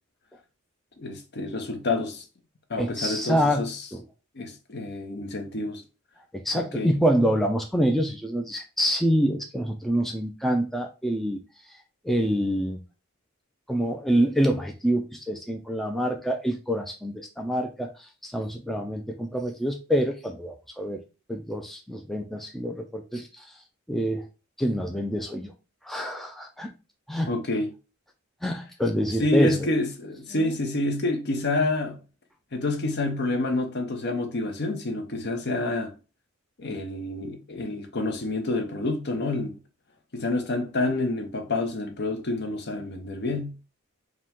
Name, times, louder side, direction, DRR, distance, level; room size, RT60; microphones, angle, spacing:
voice 1, 1.0-2.2 2.7-3.8 4.3-5.8 6.5-6.9 27.3-27.7 29.2-32.0 32.5-35.9 36.6-39.6 40.1-43.6, left 2 dB, 55° left, 0.8 m, -28 dB
voice 2, 2.8-4.0 6.3-11.4 12.0-12.8 13.7-17.9 18.2-21.0 21.3-23.5 23.9-24.2 24.6-25.5 25.8-26.7 27.1-27.3 28.4-29.7 30.3-30.5, equal, ahead, 0.3 m, -26 dB
4.9 x 2.2 x 3.6 m
head